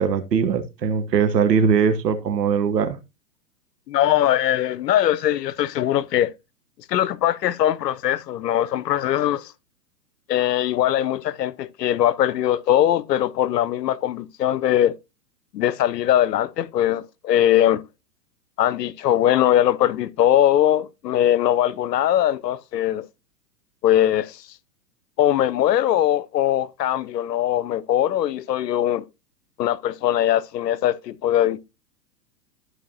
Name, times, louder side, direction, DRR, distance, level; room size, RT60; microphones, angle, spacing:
voice 1, 0.0-3.0, right 6 dB, 80° right, 1.4 m, -20 dB
voice 2, 3.9-6.3 6.9-9.5 10.3-15.0 15.5-17.8 18.6-23.1 23.8-24.4 25.2-29.0 29.6-31.6, left 11 dB, 80° left, 0.7 m, -21 dB
13.0 x 4.8 x 2.8 m
hypercardioid pair, 120°, 48 cm